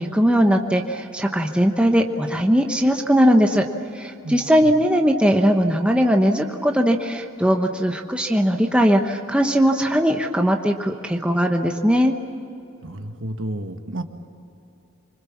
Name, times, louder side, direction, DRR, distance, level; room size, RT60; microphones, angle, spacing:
voice 1, 0.0-3.7 3.9-12.1, equal, 5° right, 3 dB, 1.0 m, -19 dB
voice 2, 4.2-4.7 12.8-14.0, right 1 dB, 55° right, 6 dB, 1.6 m, -31 dB
26.5 x 24.5 x 7.3 m, 2.7 s
head